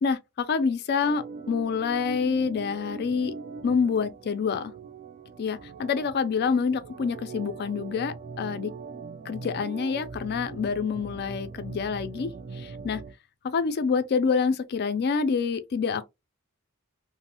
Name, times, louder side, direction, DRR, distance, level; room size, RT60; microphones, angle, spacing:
voice 1, 0.0-3.3 3.6-4.7 5.4-8.7 9.3-13.0 13.4-16.0, left 5 dB, 45° left, 0.4 m, -27 dB
Organ, 1.0-13.1, right 4 dB, 40° right, 0.3 m, -41 dB
3.0 x 2.0 x 2.8 m
head